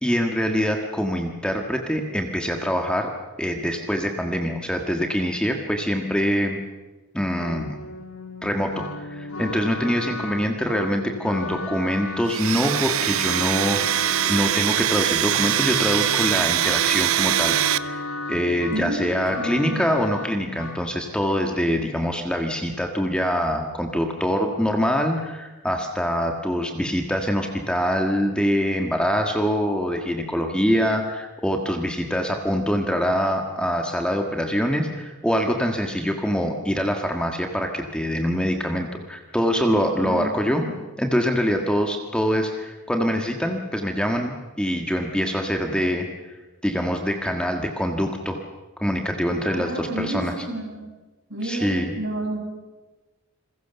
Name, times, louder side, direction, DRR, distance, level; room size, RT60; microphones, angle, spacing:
voice 1, 0.0-3.1 3.4-6.6 7.1-7.8 8.4-13.8 14.3-17.6 17.8-18.0 18.3-40.6 41.0-46.1 46.6-48.4 48.8-50.3 51.4-51.9, equal, 5° left, 3 dB, 1.6 m, -24 dB
sound 1, 7.4-20.9, left 2 dB, 85° left, 1.6 m, -35 dB
Domestic sounds home sounds, 12.3-17.8, right 12 dB, 75° right, 0.7 m, -22 dB
voice 2, 18.7-19.9 40.0-40.8 49.4-50.8 51.3-52.4, right 1 dB, 55° right, 1 dB, 7.5 m, -30 dB
28.0 x 21.5 x 7.0 m, 1.2 s
head